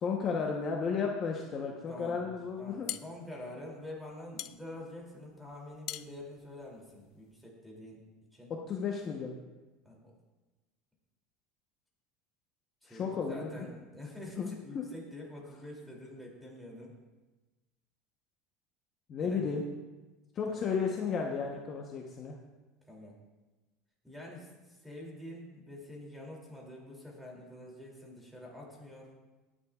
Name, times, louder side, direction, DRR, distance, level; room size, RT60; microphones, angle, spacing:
voice 1, 0.0-2.9 8.5-9.3 12.9-13.7 14.4-14.5 14.7-14.8 19.1-19.7 20.3-22.4, left 5 dB, 30° left, 0 dB, 1.0 m, -33 dB
voice 2, 1.9-2.2 2.6-8.0 8.3-8.5 9.8-10.1 12.8-16.9 19.2-19.6 20.5-20.6 22.9-23.2 24.0-29.1, left 1 dB, ahead, -2 dB, 2.8 m, -47 dB
sound 1, 2.5-7.4, left 15 dB, 50° left, 0.3 m, -44 dB
19.5 x 9.9 x 2.4 m, 1.2 s
cardioid pair, 155°, 0 cm